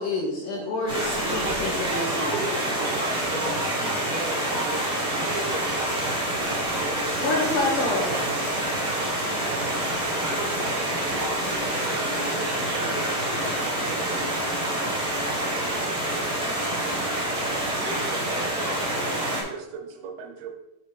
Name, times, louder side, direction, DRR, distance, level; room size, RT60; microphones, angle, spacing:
voice 1, 0.0-2.4 7.2-8.1, left 2 dB, 70° left, -2 dB, 2.1 m, -27 dB
Stream, 0.9-19.4, right 1 dB, ahead, 1.2 m, -27 dB
voice 2, 1.0-6.9 9.9-14.2 17.7-18.8, right 1 dB, 65° right, -3 dB, 3.0 m, -35 dB
voice 3, 19.1-20.5, right 5 dB, 85° right, 4 dB, 2.8 m, -44 dB
7.6 x 2.9 x 5.2 m, 0.88 s
omnidirectional pair, 4.4 m